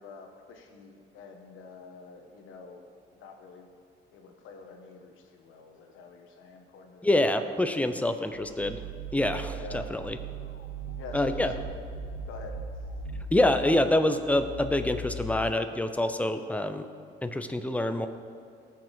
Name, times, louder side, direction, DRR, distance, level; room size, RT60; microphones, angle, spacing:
voice 1, 0.0-3.7 4.1-7.4 9.4-9.9 11.0-11.7 12.3-12.6, left 4 dB, 90° left, 4 dB, 1.5 m, -47 dB
voice 2, 7.0-8.8 9.1-10.2 11.1-11.5 13.3-16.9 17.2-18.1, left 1 dB, 5° left, 8 dB, 0.8 m, -26 dB
sound 1, 8.3-13.8, right 11 dB, 80° right, 0.7 m, -40 dB
sound 2, 9.9-10.2 10.5-15.5, left 10 dB, 55° left, 0.8 m, -42 dB
18.5 x 6.5 x 5.4 m, 2.3 s
cardioid pair, 90°, 20 cm